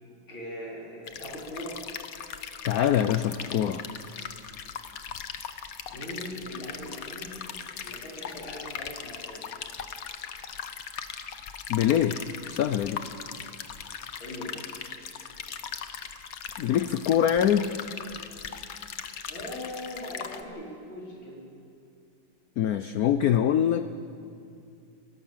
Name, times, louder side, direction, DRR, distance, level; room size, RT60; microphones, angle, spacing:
voice 1, 0.3-1.8 5.9-7.4 7.8-9.4 14.2-14.6 19.3-21.4, left 1 dB, 75° left, -4 dB, 4.9 m, -40 dB
sound 1, 1.1-20.4, left 7 dB, 55° left, 1.1 m, -39 dB
voice 2, 2.6-3.8 11.7-12.2 12.5-13.0 16.6-17.7 22.6-23.9, left 10 dB, 90° left, 11 dB, 0.8 m, -24 dB
29.5 x 12.0 x 7.4 m, 2.4 s
omnidirectional pair, 2.3 m